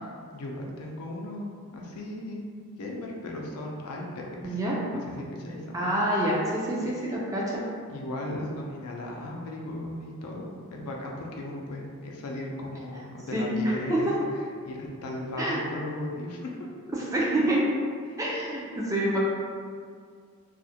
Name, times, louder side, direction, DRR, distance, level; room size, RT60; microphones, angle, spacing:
voice 1, 0.3-4.6 4.9-5.9 7.9-14.1 14.6-16.7 18.1-18.2, left 1 dB, 80° left, -1 dB, 0.4 m, -36 dB
voice 2, 4.4-4.8 5.7-7.6 13.3-14.1 15.4-15.6 16.9-17.6 18.2-19.2, right 1 dB, 15° right, -5 dB, 0.3 m, -27 dB
2.4 x 2.1 x 2.7 m, 2.1 s
head